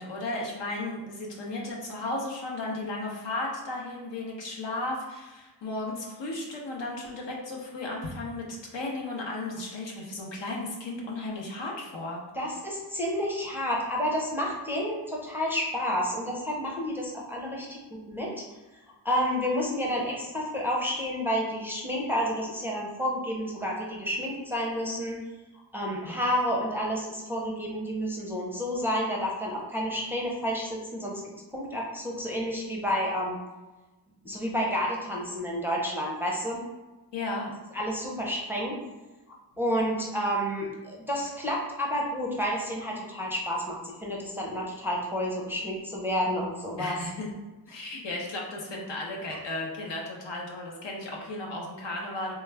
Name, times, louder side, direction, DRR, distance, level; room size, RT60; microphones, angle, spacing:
voice 1, 0.0-12.2 25.9-26.2 37.1-37.5 46.8-47.3 47.7-52.3, left 2 dB, 80° left, -2 dB, 0.9 m, -35 dB
voice 2, 12.3-18.4 19.0-25.2 25.7-31.2 31.5-33.4 34.2-36.6 37.7-38.8 39.6-47.0, equal, 5° right, -3 dB, 0.5 m, -30 dB
3.2 x 2.3 x 3.3 m, 1.2 s
wide cardioid pair, 110°, 43 cm